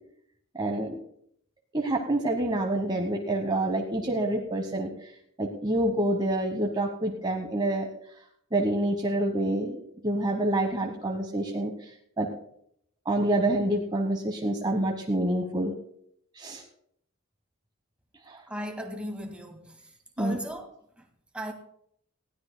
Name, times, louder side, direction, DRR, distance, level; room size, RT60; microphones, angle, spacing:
voice 1, 0.5-0.9 1.7-4.9 5.4-7.9 8.5-11.7 12.2-12.3 13.1-15.7 16.4-16.6 18.3-18.4 20.2-20.4, right 1 dB, 25° right, 1.1 m, -27 dB
voice 2, 18.5-19.8 20.2-20.7 21.3-21.5, equal, 5° right, 1.9 m, -36 dB
20.0 x 16.0 x 2.2 m
head